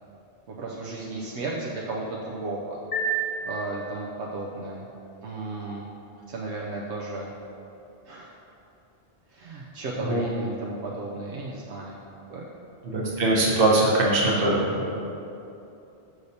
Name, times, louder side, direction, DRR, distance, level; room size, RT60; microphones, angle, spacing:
voice 1, 0.5-3.1 3.4-4.9 5.2-5.8 6.3-7.3 8.1-8.3 9.3-12.0 12.3-12.4, right 2 dB, 80° right, -3 dB, 0.9 m, -34 dB
sound 1, 2.9-4.4, right 4 dB, 35° left, 0.7 m, -30 dB
voice 2, 12.8-14.9, right 2 dB, 55° right, -4 dB, 1.2 m, -22 dB
6.4 x 6.3 x 2.7 m, 2.8 s
omnidirectional pair, 1.1 m